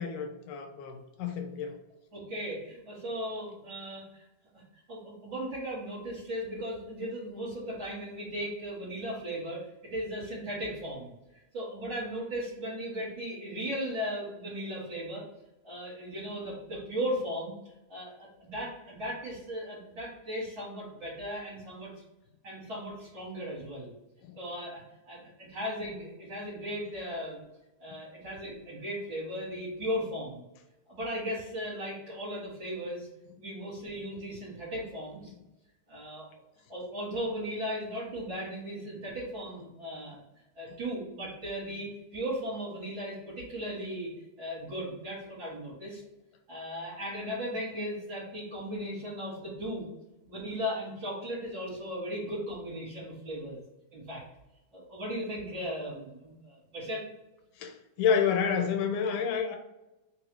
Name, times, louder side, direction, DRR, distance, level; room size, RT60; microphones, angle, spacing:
voice 1, 0.0-1.8 24.2-24.4 40.7-40.8 57.6-59.6, left 7 dB, 80° left, 4 dB, 2.0 m, -29 dB
voice 2, 2.1-4.2 4.5-4.6 4.9-11.1 11.5-15.3 15.6-17.5 17.9-22.0 22.4-23.9 24.4-27.4 27.8-30.4 30.9-33.1 33.4-35.3 35.9-36.3 36.7-40.2 40.6-44.1 44.4-46.0 46.5-49.9 50.3-53.6 53.9-54.2 54.7-57.0, equal, 45° right, -8 dB, 2.0 m, -37 dB
4.5 x 2.7 x 4.4 m, 0.97 s
omnidirectional pair, 3.5 m